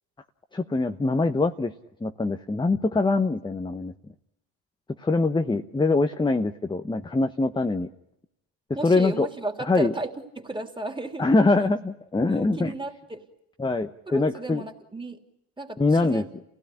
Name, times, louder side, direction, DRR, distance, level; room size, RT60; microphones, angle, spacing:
voice 1, 0.5-1.7 2.0-3.9 5.0-7.9 8.8-9.3 9.7-9.9 11.2-12.7 13.6-14.6 15.8-16.2, left 3 dB, 10° left, 7 dB, 1.0 m, -23 dB
voice 2, 8.7-11.3 12.3-13.2 14.1-15.2 15.6-16.3, right 2 dB, 10° right, 5 dB, 3.2 m, -34 dB
28.5 x 16.5 x 10.0 m, 0.86 s
supercardioid pair, 90°, 49 cm